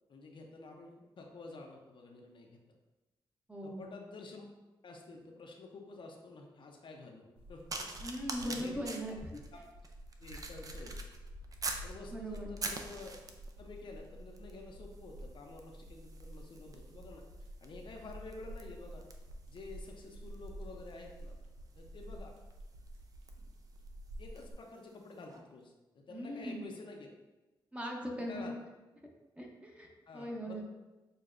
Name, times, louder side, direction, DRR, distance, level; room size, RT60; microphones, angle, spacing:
voice 1, 0.1-2.6 3.6-4.5 4.8-9.0 10.2-10.9 11.8-13.1 13.6-17.2 17.6-19.0 19.5-21.4 21.8-22.3 23.4-23.5 24.2-27.1 28.2-28.5 30.1-30.6, left 3 dB, 60° left, 1 dB, 0.6 m, -50 dB
voice 2, 3.5-3.8 8.0-9.3 12.1-12.5 26.1-26.6 27.7-28.5 29.4-30.6, equal, 10° right, 0 dB, 0.9 m, -40 dB
sound 1, 7.4-24.5, equal, 85° right, 0.7 m, -49 dB
sound 2, 7.7-11.9 12.3-13.6 14.4-14.6 14.9-24.6 25.3-25.4, right 3 dB, 40° right, 0.5 m, -46 dB
6.5 x 2.2 x 2.5 m, 1.1 s
cardioid pair, 60°, 9 cm